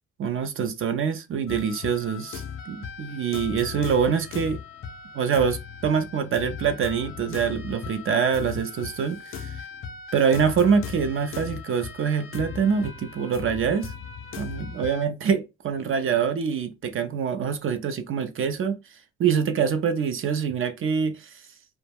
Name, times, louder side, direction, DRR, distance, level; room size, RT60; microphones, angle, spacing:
voice 1, 0.2-4.6 5.1-9.6 10.1-13.9 14.4-21.4, right 6 dB, 45° right, 0.4 m, -25 dB
sound 1, 1.5-15.1, left 6 dB, 45° left, 0.5 m, -38 dB
2.2 x 2.1 x 3.3 m
cardioid pair, 90°, 30 cm